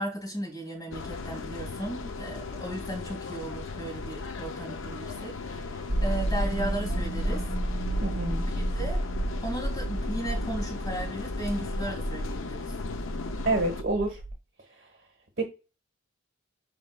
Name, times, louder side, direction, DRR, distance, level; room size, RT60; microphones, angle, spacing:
voice 1, 0.0-7.5 8.7-9.0 9.4-12.7, right 1 dB, 20° left, 2.7 m, -36 dB
sound 1, 0.9-13.8, left 4 dB, 75° left, 0.5 m, -37 dB
sound 2, 5.9-14.3, right 1 dB, 15° right, 1.4 m, -31 dB
voice 2, 8.0-8.4 13.4-14.2 15.4-15.5, right 2 dB, 55° right, 1.1 m, -27 dB
6.1 x 3.4 x 2.2 m
head